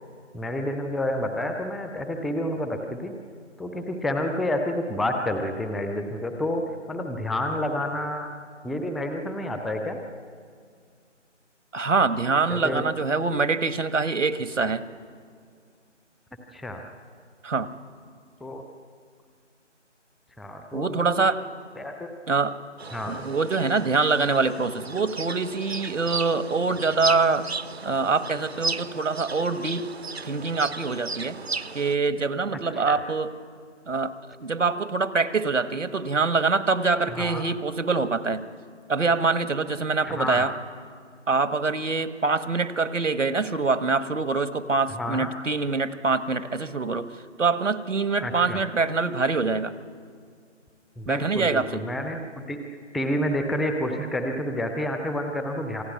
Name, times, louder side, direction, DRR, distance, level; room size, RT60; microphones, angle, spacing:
voice 1, 0.3-3.1 3.6-6.6 6.9-8.3 8.6-10.0 12.5-12.8 16.5-16.8 18.4-18.6 20.4-21.2 21.8-22.1 22.9-23.3 32.7-33.0 37.1-37.5 40.0-40.4 45.0-45.3 48.2-48.6 51.0-52.6 52.9-55.8, left 1 dB, ahead, 5 dB, 0.6 m, -29 dB
voice 2, 11.7-14.8 17.4-17.7 20.7-21.4 22.3-22.6 23.1-27.5 27.8-29.9 30.2-31.4 31.7-33.3 33.9-34.1 34.4-38.4 38.9-40.5 41.3-47.1 47.4-49.7 51.1-51.8, right 4 dB, 85° right, 11 dB, 1.6 m, -24 dB
sound 1, 22.8-32.0, right 4 dB, 60° right, 0.7 m, -35 dB
27.5 x 19.5 x 9.5 m, 2.1 s
figure-of-eight pair, 180°, 36 cm